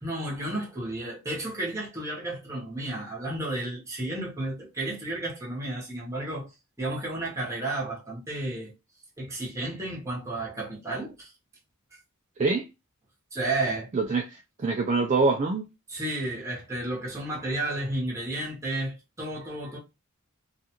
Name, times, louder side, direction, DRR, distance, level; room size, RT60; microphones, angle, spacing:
voice 1, 0.0-6.5 6.8-8.7 9.2-11.3 11.9-12.0 13.3-13.9 15.9-19.8, right 2 dB, 15° right, 1.0 m, -32 dB
voice 2, 13.9-15.6, right 3 dB, 30° right, 0.3 m, -25 dB
2.5 x 2.3 x 2.8 m
head